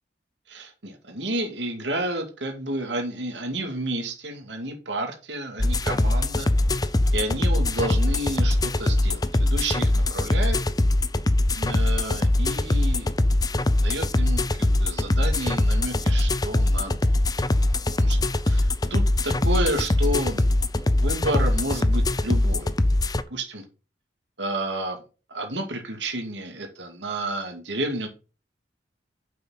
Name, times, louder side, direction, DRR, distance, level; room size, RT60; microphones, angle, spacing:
voice 1, 0.5-6.5 7.1-10.6 11.6-13.1 13.8-17.4 17.9-18.2 18.4-22.7 23.3-23.6 24.4-25.0 25.3-28.1, right 1 dB, 85° right, 4 dB, 2.3 m, -31 dB
sound 1, 5.6-23.2, left 1 dB, 20° left, 0.6 m, -22 dB
7.6 x 6.1 x 5.6 m, 0.32 s
head